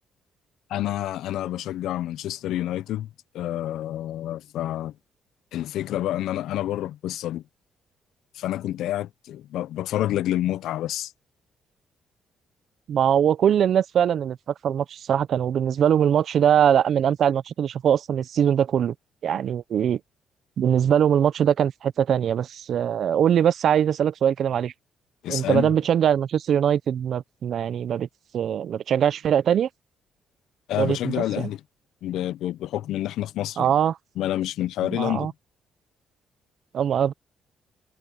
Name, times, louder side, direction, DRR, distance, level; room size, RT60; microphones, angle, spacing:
voice 1, 0.7-3.1 3.3-4.9 5.5-7.4 8.3-11.1 25.2-25.7 30.7-31.6 32.0-33.7 34.2-35.3, left 13 dB, 85° left, 0.6 m, -28 dB
voice 2, 12.9-14.4 14.6-18.9 19.2-20.0 20.6-24.7 25.3-28.1 28.3-29.7 30.8-31.5 33.6-34.0 34.9-35.3 36.7-37.1, right 9 dB, 65° right, 0.5 m, -22 dB
cardioid pair, 90°, 0 cm